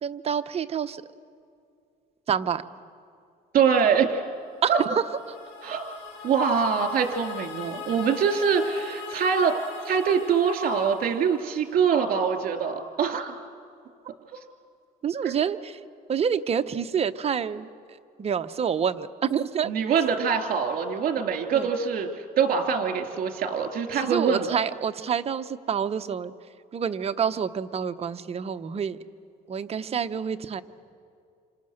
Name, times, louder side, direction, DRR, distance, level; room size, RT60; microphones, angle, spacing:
voice 1, 0.0-1.0 2.3-2.6 4.6-5.0 13.1-13.2 15.0-15.8 16.1-17.7 18.2-19.7 21.5-21.7 24.0-26.3 26.7-29.0 29.5-30.6, right 7 dB, 40° right, 9 dB, 0.9 m, -27 dB
voice 2, 3.5-4.2 4.7-4.8 5.6-9.5 9.8-13.4 15.2-15.3 19.6-24.6, right 6 dB, 55° right, 5 dB, 3.1 m, -24 dB
sound 1, 4.6-11.7, left 5 dB, 85° left, 4.9 m, -41 dB
28.0 x 26.5 x 6.6 m, 2.4 s
cardioid pair, 110°, 17 cm